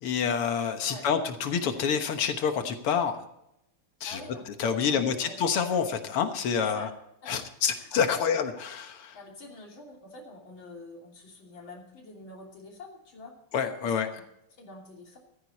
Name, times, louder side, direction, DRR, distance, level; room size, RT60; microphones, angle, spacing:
voice 1, 0.0-3.2 4.0-4.2 4.6-6.9 7.3-9.2 13.5-14.1, left 7 dB, 90° left, 7 dB, 2.2 m, -27 dB
voice 2, 4.0-4.4 4.7-5.4 5.7-5.8 6.5-6.9 7.2-7.3 7.7-8.3 9.1-13.3 13.8-14.2 14.6-15.2, left 3 dB, 60° left, 0 dB, 3.7 m, -46 dB
14.5 x 14.0 x 4.2 m, 0.81 s
omnidirectional pair, 2.4 m